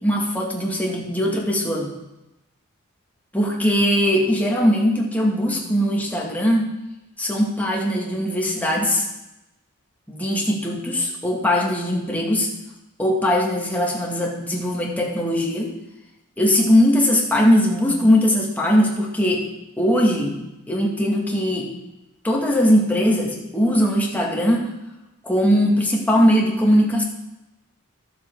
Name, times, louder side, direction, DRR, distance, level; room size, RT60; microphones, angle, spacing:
voice 1, 0.0-1.9 3.3-6.7 7.2-9.0 10.1-12.5 13.0-15.7 16.4-19.5 19.8-20.3 20.7-21.7 22.2-24.7 25.2-27.0, equal, 10° left, -2 dB, 2.0 m, -20 dB
12.5 x 7.6 x 4.7 m, 0.94 s
head